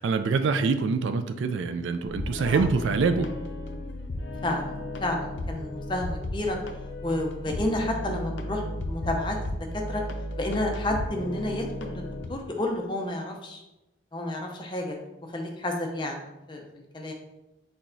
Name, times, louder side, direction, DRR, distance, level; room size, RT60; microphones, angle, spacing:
voice 1, 0.0-3.3, right 4 dB, 75° right, 9 dB, 0.3 m, -25 dB
sound 1, 2.0-12.3, left 1 dB, 75° left, 0.5 m, -34 dB
voice 2, 4.4-6.6 7.0-9.4 9.7-10.0 10.4-12.0 12.3-13.6 14.1-15.0 15.3-16.2 16.5-17.1, left 1 dB, 25° left, 2 dB, 0.6 m, -30 dB
4.6 x 4.2 x 2.6 m, 0.95 s
head